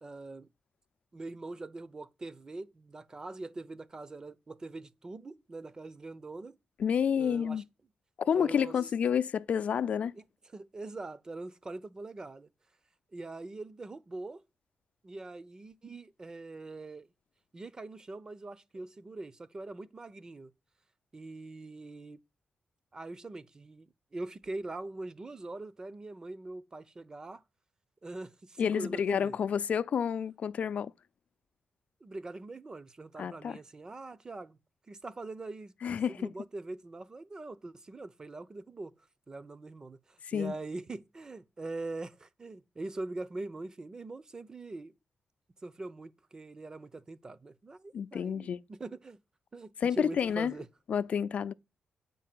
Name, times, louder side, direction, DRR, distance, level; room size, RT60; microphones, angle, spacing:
voice 1, 0.0-0.5 1.1-6.6 7.2-7.6 8.3-8.8 10.1-10.2 10.5-12.5 13.1-14.4 15.0-17.1 17.5-20.5 21.1-22.2 22.9-27.4 28.0-29.4 32.0-34.6 34.9-35.7 36.1-38.9 39.3-44.9 45.6-49.2 49.5-50.7, right 2 dB, 30° right, 0.8 m, -43 dB
voice 2, 6.8-7.6 8.2-10.1 28.6-30.9 33.2-33.6 35.8-36.3 40.2-40.5 47.9-48.6 49.8-50.5 50.9-51.5, left 7 dB, 65° left, 0.5 m, -29 dB
8.7 x 5.4 x 7.6 m
cardioid pair, 100°, 3 cm